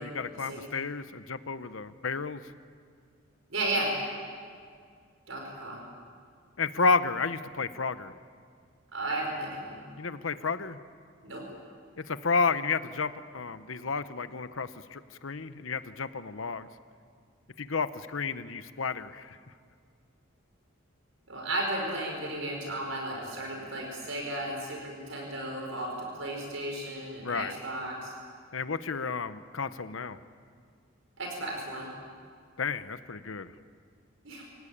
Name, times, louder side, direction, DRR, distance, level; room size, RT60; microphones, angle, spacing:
voice 1, 0.0-2.4 6.6-8.1 10.0-10.8 12.0-16.7 17.6-19.4 27.2-27.5 28.5-30.2 32.6-33.5, left 4 dB, 80° left, 12 dB, 0.9 m, -31 dB
voice 2, 3.5-3.9 5.3-5.8 8.9-9.8 11.2-11.4 21.3-25.9 26.2-28.1 31.2-31.9 34.2-34.4, right 1 dB, 75° right, 0 dB, 5.5 m, -34 dB
27.5 x 18.0 x 8.7 m, 2.1 s
head